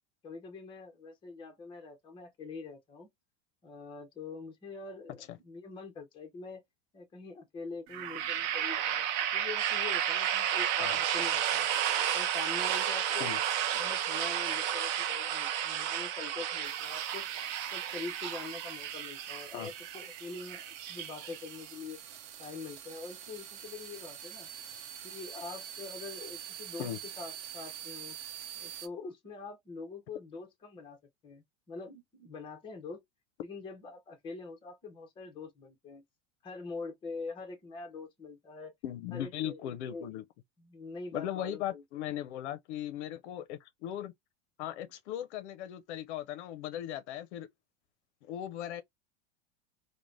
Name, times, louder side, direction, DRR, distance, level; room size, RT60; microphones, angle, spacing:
voice 1, 0.2-3.1 3.6-6.6 6.9-11.7 12.1-13.3 13.7-17.2 17.7-22.0 22.4-24.5 25.0-26.9 27.2-28.2 28.6-33.0 33.4-36.0 36.4-38.7 39.1-40.1 40.6-42.1, left 4 dB, 15° left, 0.6 m, -44 dB
sound 1, 7.9-21.7, right 10 dB, 40° right, 0.4 m, -32 dB
sound 2, 16.6-28.9, right 10 dB, 70° right, 0.7 m, -46 dB
voice 2, 38.8-40.2 41.1-44.1 44.6-47.5 48.3-48.8, left 11 dB, 70° left, 0.6 m, -38 dB
3.1 x 2.1 x 2.5 m
supercardioid pair, 155°, 36 cm